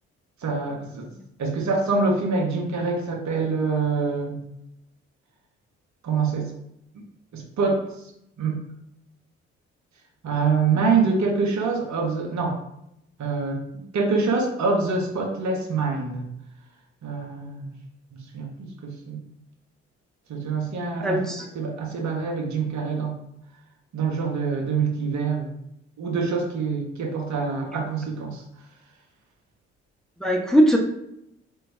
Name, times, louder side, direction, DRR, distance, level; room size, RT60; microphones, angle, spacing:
voice 1, 0.4-1.1 1.4-4.4 6.0-6.5 7.3-7.8 8.4-8.6 10.2-12.6 13.2-16.2 17.0-17.7 18.3-19.2 20.3-23.2 23.9-25.5 26.0-28.4, right 4 dB, 55° right, 0 dB, 1.2 m, -25 dB
voice 2, 21.0-21.4 30.2-30.8, equal, ahead, 1 dB, 0.8 m, -19 dB
4.3 x 3.8 x 2.7 m, 0.79 s
hypercardioid pair, 40°, 33 cm